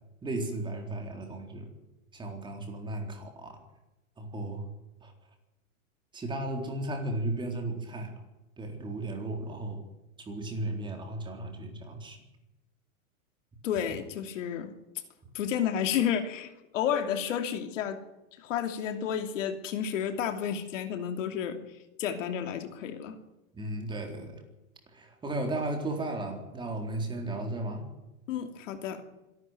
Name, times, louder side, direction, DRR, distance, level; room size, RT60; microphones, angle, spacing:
voice 1, 0.2-1.7 2.1-3.6 4.2-4.7 5.0-5.1 6.1-8.1 8.6-9.8 10.2-12.2 23.5-24.4 24.9-27.9, right 2 dB, 10° right, 3 dB, 4.0 m, -35 dB
voice 2, 13.6-14.7 15.3-18.0 18.4-21.6 22.0-23.2 28.3-29.0, left 9 dB, 65° left, 7 dB, 2.9 m, -31 dB
25.5 x 12.5 x 9.3 m, 1.0 s
supercardioid pair, 155°, 41 cm